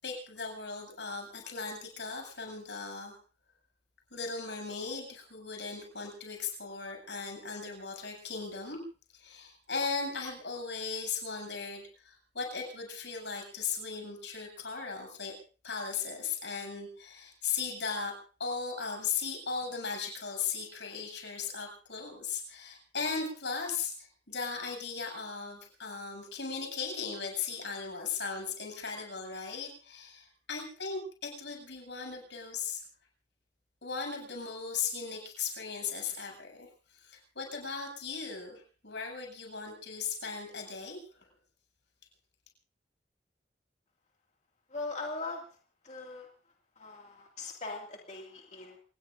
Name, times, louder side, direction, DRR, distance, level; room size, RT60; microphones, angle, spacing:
voice 1, 0.0-3.2 4.1-8.8 9.1-15.3 15.6-18.1 18.4-32.8 33.8-41.3, left 5 dB, 85° left, 2 dB, 7.8 m, -37 dB
voice 2, 44.7-45.5 45.8-46.3 46.8-48.8, left 3 dB, 40° left, 0 dB, 2.4 m, -40 dB
28.0 x 19.5 x 2.7 m, 0.39 s
head